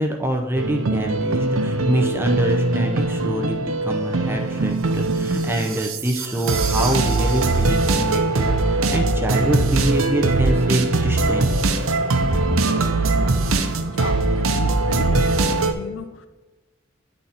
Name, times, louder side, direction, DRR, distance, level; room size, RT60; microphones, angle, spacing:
voice 1, 0.0-11.6 12.3-12.4, right 1 dB, 10° right, 2 dB, 0.5 m, -25 dB
sound 1, 0.5-15.7, right 3 dB, 90° right, 0.7 m, -21 dB
voice 2, 13.9-16.3, left 3 dB, 65° left, 10 dB, 0.4 m, -33 dB
9.7 x 4.0 x 4.2 m, 1.2 s
head